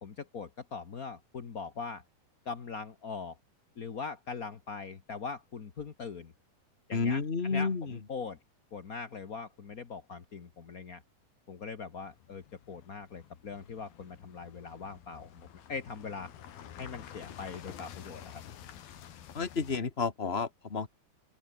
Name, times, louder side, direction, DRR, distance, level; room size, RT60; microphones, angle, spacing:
voice 1, 0.0-2.0 2.4-3.4 3.8-6.3 6.9-8.4 8.7-11.0 11.5-16.3 16.8-18.2, left 5 dB, 55° left, 1.0 m, -41 dB
voice 2, 6.9-8.0 19.3-20.9, left 4 dB, 25° left, 1.4 m, -31 dB
sound 1, 12.0-19.8, left 10 dB, 90° left, 4.1 m, -50 dB
open air
omnidirectional pair, 4.1 m